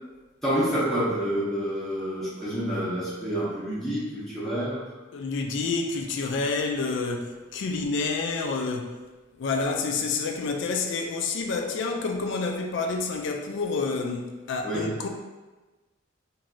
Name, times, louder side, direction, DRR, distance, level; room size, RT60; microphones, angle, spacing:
voice 1, 0.4-4.8 14.6-14.9, equal, ahead, -10 dB, 0.6 m, -28 dB
voice 2, 5.1-9.0 9.4-15.1, left 4 dB, 65° left, 3 dB, 0.4 m, -28 dB
3.0 x 2.6 x 2.5 m, 1.2 s
head